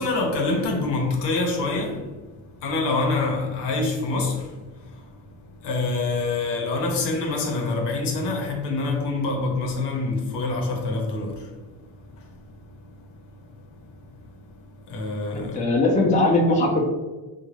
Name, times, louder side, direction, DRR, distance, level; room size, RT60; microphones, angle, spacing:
voice 1, 0.0-15.6, left 3 dB, 70° left, 0.8 m, -27 dB
voice 2, 15.3-16.8, left 2 dB, 15° left, 0.5 m, -20 dB
2.9 x 2.3 x 2.8 m
supercardioid pair, 75°, 44 cm